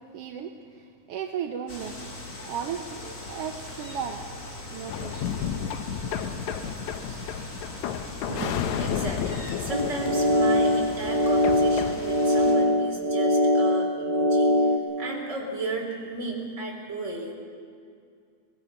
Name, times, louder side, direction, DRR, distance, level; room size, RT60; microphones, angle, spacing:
voice 1, 0.1-0.5 0.8-5.3 6.6-6.8 7.1-7.3 8.3-8.8, right 8 dB, 70° right, 4 dB, 1.5 m, -36 dB
sound 1, 1.7-12.5, left 1 dB, 30° left, 2.2 m, -41 dB
sound 2, 4.9-12.0, left 8 dB, 75° left, 2.1 m, -32 dB
voice 2, 8.8-17.3, right 2 dB, 20° right, -1 dB, 3.6 m, -34 dB
sound 3, 9.7-14.8, left 1 dB, 45° right, 1.4 m, -22 dB
23.0 x 19.5 x 5.8 m, 2.3 s
omnidirectional pair, 3.6 m